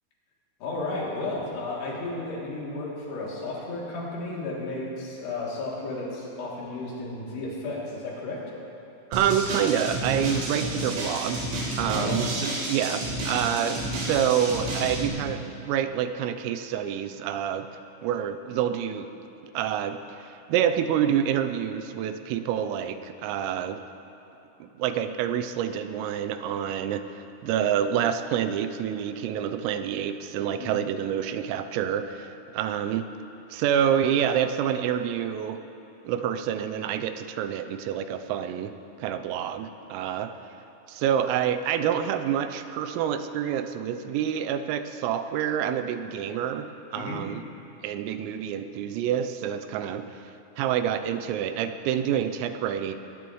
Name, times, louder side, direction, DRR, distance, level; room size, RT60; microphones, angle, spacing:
voice 1, 0.6-8.4 11.9-12.3 30.6-30.7 47.0-47.2, left 2 dB, 60° left, -5 dB, 4.8 m, -33 dB
sound 1, 9.1-15.1, right 1 dB, 65° right, 5.7 m, -30 dB
voice 2, 9.1-11.4 11.8-17.7 18.0-19.1 19.5-23.8 24.6-33.0 33.5-35.6 36.0-38.7 39.0-40.3 40.9-46.7 46.9-47.4 47.8-50.2 50.6-52.9, right 9 dB, 85° right, 8 dB, 3.4 m, -27 dB
22.0 x 19.0 x 3.1 m, 2.9 s
omnidirectional pair, 5.9 m